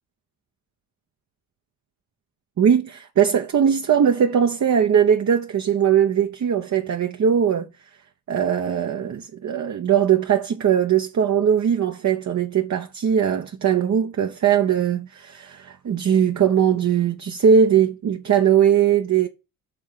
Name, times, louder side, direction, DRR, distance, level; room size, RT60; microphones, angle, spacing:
voice 1, 2.6-7.7 8.3-19.3, right 8 dB, 45° right, 0.8 m, -20 dB
7.6 x 3.7 x 4.8 m
hypercardioid pair, 40°, 41 cm